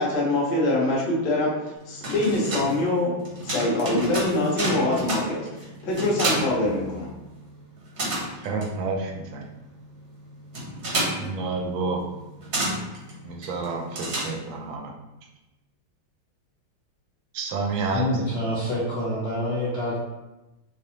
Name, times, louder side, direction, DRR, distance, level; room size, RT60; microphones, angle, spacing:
voice 1, 0.0-1.5 1.9-3.1 3.4-7.1, left 2 dB, 60° left, -5 dB, 1.3 m, -24 dB
sound 1, 1.8-7.4 7.6-14.7, right 1 dB, 50° right, 0.8 m, -31 dB
voice 2, 8.4-9.4 11.2-12.0 13.2-14.9 17.3-18.1 18.3-18.5, right 3 dB, 75° right, 1 dB, 1.3 m, -29 dB
voice 3, 17.9-20.1, left 1 dB, 90° left, -10 dB, 0.5 m, -27 dB
4.9 x 2.0 x 2.7 m, 1.0 s
omnidirectional pair, 2.3 m